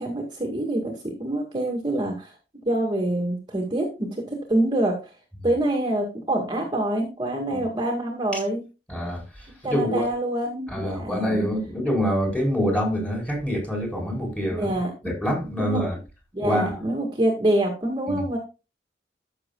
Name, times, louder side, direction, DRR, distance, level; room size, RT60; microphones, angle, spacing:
voice 1, 0.0-2.3 2.7-5.1 5.4-8.6 9.6-11.3 14.5-14.9 15.6-15.8 16.3-18.4, right 1 dB, 25° right, 1.9 m, -26 dB
voice 2, 8.9-10.1 10.7-14.7 15.0-16.0 16.4-16.9 18.1-18.2, equal, 10° left, 4.3 m, -26 dB
14.0 x 6.7 x 2.3 m
head